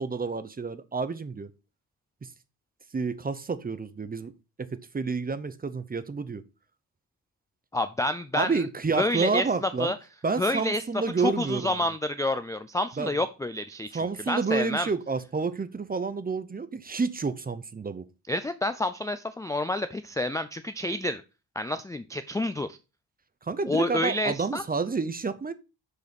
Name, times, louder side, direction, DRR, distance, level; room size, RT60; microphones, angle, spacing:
voice 1, 0.0-1.5 2.2-2.3 2.9-4.3 4.6-4.7 4.9-6.4 8.3-9.9 10.2-11.8 13.0-13.1 13.9-18.1 23.4-25.5, right 4 dB, 20° right, 0.7 m, -29 dB
voice 2, 7.7-8.6 9.0-10.0 10.4-10.8 11.2-14.0 14.3-14.9 18.3-21.2 21.6-22.8 23.6-24.6, left 1 dB, 10° left, 0.3 m, -29 dB
6.6 x 5.2 x 5.2 m
cardioid pair, 130°, 42 cm